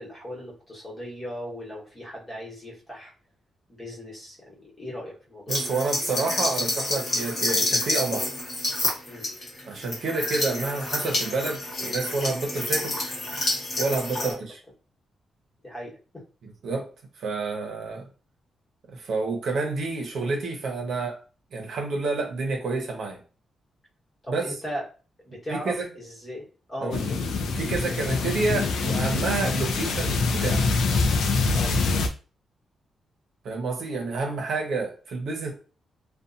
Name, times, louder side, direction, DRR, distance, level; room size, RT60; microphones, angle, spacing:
voice 1, 0.0-3.1 3.7-5.6 9.1-9.2 14.2-14.4 15.6-16.2 20.9-21.0 24.2-24.8 25.2-26.4 26.7-27.2 27.9-28.0 31.5-31.7, equal, 20° left, -5 dB, 1.2 m, -37 dB
sound 1, 5.5-14.3, left 2 dB, 50° left, 1.1 m, -28 dB
voice 2, 5.5-8.3 9.6-13.0 13.8-14.6 16.4-16.9 17.2-18.0 18.9-21.2 21.5-23.2 24.3-24.5 25.5-25.9 26.8-27.0 27.6-30.6 33.4-35.5, right 3 dB, 65° right, 2 dB, 0.7 m, -29 dB
sound 2, 26.9-32.1, left 3 dB, 90° left, 0.4 m, -24 dB
2.6 x 2.2 x 2.5 m, 0.36 s
wide cardioid pair, 145°, 0 cm